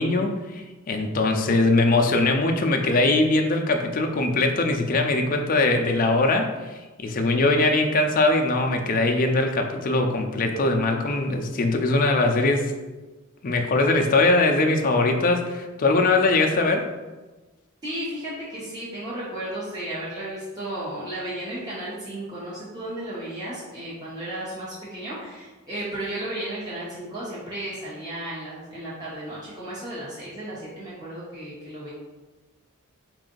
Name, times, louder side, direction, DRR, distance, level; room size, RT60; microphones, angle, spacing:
voice 1, 0.0-12.7 13.4-16.9, left 2 dB, 40° left, 3 dB, 0.4 m, -21 dB
voice 2, 17.8-31.9, right 1 dB, 20° right, -10 dB, 1.0 m, -34 dB
4.7 x 2.5 x 3.8 m, 1.2 s
head